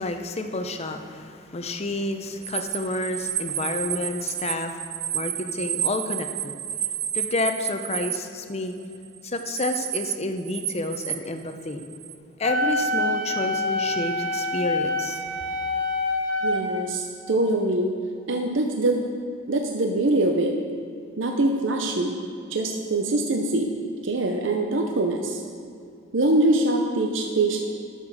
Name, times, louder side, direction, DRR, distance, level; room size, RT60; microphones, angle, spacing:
voice 1, 0.0-4.8 5.1-6.5 7.1-8.7 9.2-11.8 12.4-15.2, left 2 dB, 35° left, 6 dB, 0.7 m, -29 dB
sound 1, 2.4-8.2 8.9-10.1 10.4-12.1, right 11 dB, 40° right, 0.5 m, -30 dB
Wind instrument woodwind instrument, 12.4-16.6, left 1 dB, 85° left, 1.9 m, -26 dB
voice 2, 16.4-17.9 18.3-19.0 19.5-20.6 21.2-22.2 22.5-23.8 24.0-25.4 26.1-27.6, right 2 dB, 70° right, 2 dB, 0.7 m, -23 dB
11.0 x 6.8 x 6.2 m, 2.5 s
head